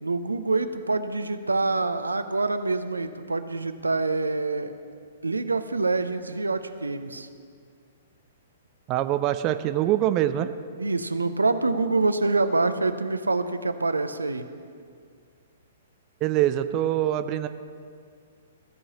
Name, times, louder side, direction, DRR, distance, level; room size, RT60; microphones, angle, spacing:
voice 1, 0.0-4.7 5.2-7.3 10.8-14.4, right 3 dB, 75° right, 10 dB, 0.6 m, -26 dB
voice 2, 8.9-10.5 16.2-17.5, right 13 dB, 30° right, 10 dB, 0.4 m, -24 dB
15.5 x 5.5 x 8.1 m, 2.2 s
figure-of-eight pair, 110°, 0 cm